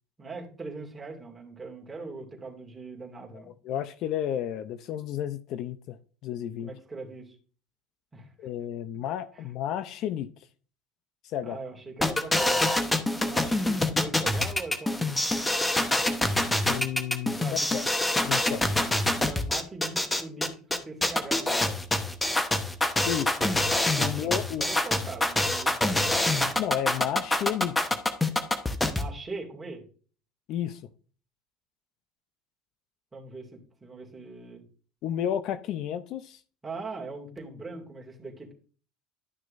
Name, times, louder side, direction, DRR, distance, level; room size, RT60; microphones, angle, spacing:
voice 1, 0.2-3.5 6.6-7.4 8.1-8.5 9.3-9.5 11.4-12.7 13.2-15.1 17.3-17.7 19.1-21.8 24.0-26.2 28.9-29.8 33.1-34.6 36.6-38.5, right 3 dB, 15° right, 0 dB, 2.2 m, -41 dB
voice 2, 3.6-6.0 6.2-6.7 8.4-10.3 11.2-11.6 16.7-17.9 18.2-18.6 23.0-23.5 24.0-24.7 26.6-27.8 30.5-30.8 35.0-36.4, left 10 dB, 60° left, 13 dB, 0.5 m, -32 dB
sound 1, 12.0-29.0, left 1 dB, 10° left, 1.0 m, -25 dB
11.5 x 6.2 x 2.6 m, 0.41 s
supercardioid pair, 110°, 0 cm